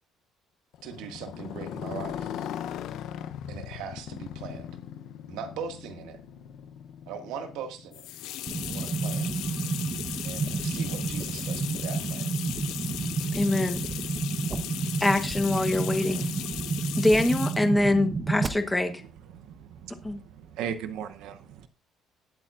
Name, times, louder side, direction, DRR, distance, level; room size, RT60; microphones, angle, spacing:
Motorcycle, 0.7-8.8, left 9 dB, 60° left, 0.7 m, -39 dB
voice 1, 0.8-2.3 3.5-4.7 5.3-6.2 7.1-8.1 8.7-9.3 10.2-12.3, right 6 dB, 85° right, 1.9 m, -39 dB
sound 1, 7.9-17.7, left 13 dB, 90° left, 1.1 m, -37 dB
sound 2, 8.5-18.5, right 4 dB, 25° right, 0.9 m, -31 dB
voice 2, 13.3-13.8 15.0-16.3 17.0-19.0 20.0-20.2, left 1 dB, 5° left, 1.1 m, -24 dB
voice 3, 17.8-18.4 19.0-19.1 19.5-19.7 20.5-21.7, right 8 dB, 70° right, 0.8 m, -37 dB
19.0 x 8.7 x 2.5 m
cardioid pair, 175°, 0 cm